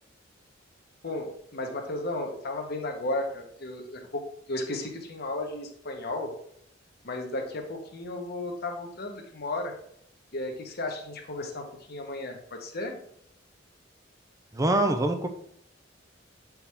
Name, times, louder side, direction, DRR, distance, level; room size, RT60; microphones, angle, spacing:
voice 1, 1.0-4.2 4.5-6.3 7.0-9.7 10.3-13.0, left 2 dB, 55° left, 3 dB, 1.1 m, -34 dB
voice 2, 14.5-15.3, right 1 dB, 15° right, 7 dB, 0.5 m, -24 dB
7.0 x 4.7 x 3.5 m, 0.69 s
head